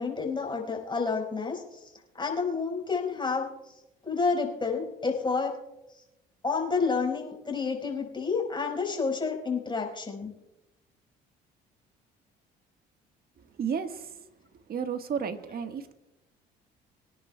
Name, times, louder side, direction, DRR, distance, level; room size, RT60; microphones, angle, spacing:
voice 1, 0.0-1.6 2.1-3.5 4.0-5.5 6.4-10.3, left 4 dB, 25° left, 1 dB, 4.5 m, -29 dB
voice 2, 13.6-14.2 14.7-15.9, right 7 dB, 50° right, 8 dB, 1.5 m, -32 dB
23.5 x 10.5 x 2.3 m, 0.93 s
hypercardioid pair, 65°, 21 cm